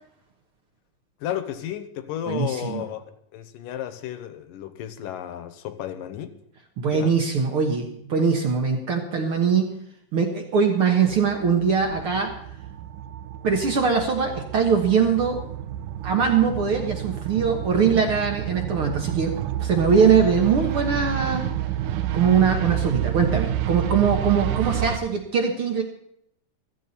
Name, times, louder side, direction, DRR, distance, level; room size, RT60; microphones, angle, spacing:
voice 1, 1.2-3.0 3.3-6.4 6.9-7.2, left 10 dB, 80° left, 9 dB, 2.6 m, -33 dB
voice 2, 6.8-9.7 10.1-12.3 13.4-15.4 16.0-19.3 19.6-21.5 22.1-25.8, right 6 dB, 55° right, 3 dB, 1.8 m, -22 dB
sound 1, 11.0-25.0, right 12 dB, 80° right, 2.3 m, -29 dB
16.0 x 14.0 x 4.2 m, 0.73 s
omnidirectional pair, 3.8 m